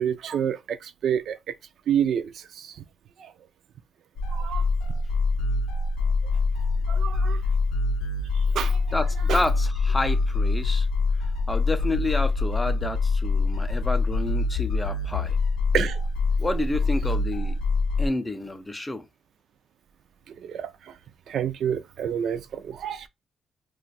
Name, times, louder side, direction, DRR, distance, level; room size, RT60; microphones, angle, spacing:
voice 1, 0.0-1.6 1.9-2.8 3.2-3.3 4.3-4.6 6.9-7.4 8.3-8.8 9.3-9.4 15.7-16.0 20.3-20.9 21.3-23.1, right 9 dB, 70° right, 0.3 m, -28 dB
sound 1, 4.2-18.1, left 3 dB, 80° left, 0.6 m, -25 dB
voice 2, 8.9-10.9 11.5-15.4 16.4-17.6 18.0-19.1, left 2 dB, 15° left, 0.4 m, -29 dB
2.4 x 2.2 x 4.0 m
cardioid pair, 90°, 0 cm